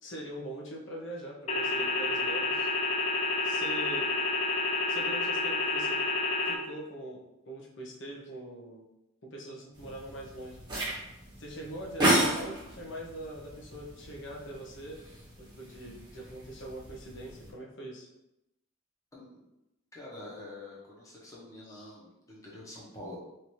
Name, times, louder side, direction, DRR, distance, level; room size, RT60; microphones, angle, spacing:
voice 1, 0.0-2.7 3.4-4.1 4.9-6.0 6.4-8.9 9.2-10.6 11.4-15.0 15.4-18.1 21.6-21.9, right 1 dB, 60° left, -3 dB, 1.0 m, -42 dB
sound 1, 1.5-6.5, left 3 dB, 30° left, 0.5 m, -29 dB
sound 2, 9.7-17.5, right 1 dB, 20° right, 1.3 m, -34 dB
voice 2, 19.9-23.2, left 1 dB, 15° left, -6 dB, 1.1 m, -46 dB
3.2 x 2.8 x 4.4 m, 0.90 s
head